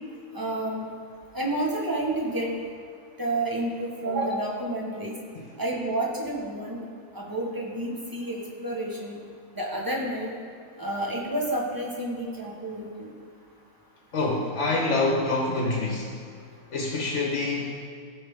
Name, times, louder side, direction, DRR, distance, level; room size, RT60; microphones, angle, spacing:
voice 1, 0.3-0.9 1.3-2.5 3.2-5.1 5.6-6.8 7.1-9.2 9.5-10.3 10.8-13.1, right 1 dB, 15° right, -2 dB, 1.2 m, -30 dB
voice 2, 14.1-16.2 16.7-17.7, left 2 dB, 55° left, -1 dB, 1.3 m, -26 dB
15.0 x 5.3 x 3.6 m, 2.3 s
omnidirectional pair, 1.5 m